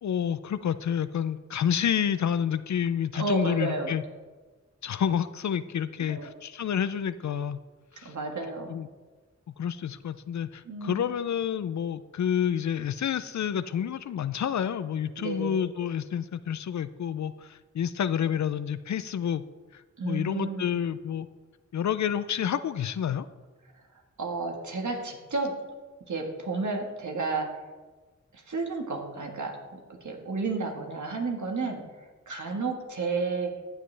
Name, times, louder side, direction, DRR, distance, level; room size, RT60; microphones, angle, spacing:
voice 1, 0.0-4.0 4.8-7.6 8.0-8.2 8.7-8.9 9.6-19.4 19.7-21.3 21.7-23.3, left 8 dB, 75° left, 13 dB, 0.4 m, -29 dB
voice 2, 3.1-4.0 6.1-6.3 8.0-8.8 10.6-11.1 15.2-15.7 20.0-20.7 23.9-25.5 26.0-27.6 28.3-33.5, right 3 dB, 80° right, 2 dB, 1.5 m, -32 dB
14.5 x 7.5 x 3.3 m, 1.3 s
cardioid pair, 50°, 29 cm